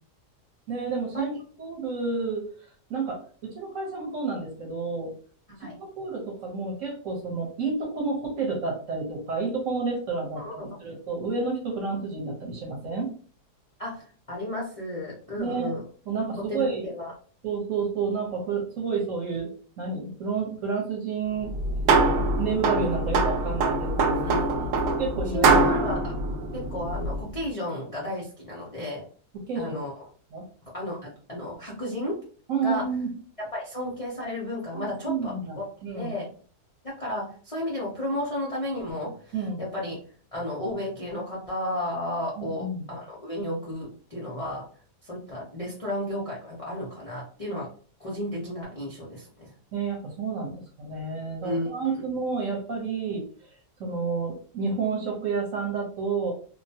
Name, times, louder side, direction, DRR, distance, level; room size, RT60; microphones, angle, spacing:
voice 1, 0.7-1.3 1.6-2.4 2.9-5.1 5.6-13.1 15.4-15.7 16.1-16.9 17.4-19.5 19.8-21.5 22.4-24.3 25.0-25.6 29.5-29.8 30.3-30.4 32.5-33.1 34.7-36.1 39.3-39.6 42.4-42.9 49.7-53.2 53.8-56.3, right 4 dB, 55° right, -1 dB, 1.1 m, -30 dB
voice 2, 10.4-11.0 13.8-15.8 16.4-17.1 24.2-24.7 25.3-26.2 26.5-29.1 29.5-30.0 30.6-32.2 32.6-32.9 33.4-35.7 36.0-36.3 36.8-40.0 40.3-44.7 45.0-47.7 48.0-49.5 51.4-52.0, left 1 dB, 50° left, -6 dB, 0.4 m, -33 dB
sound 1, 21.4-27.3, right 3 dB, 75° right, 1.1 m, -24 dB
2.8 x 2.1 x 2.7 m, 0.43 s
omnidirectional pair, 1.7 m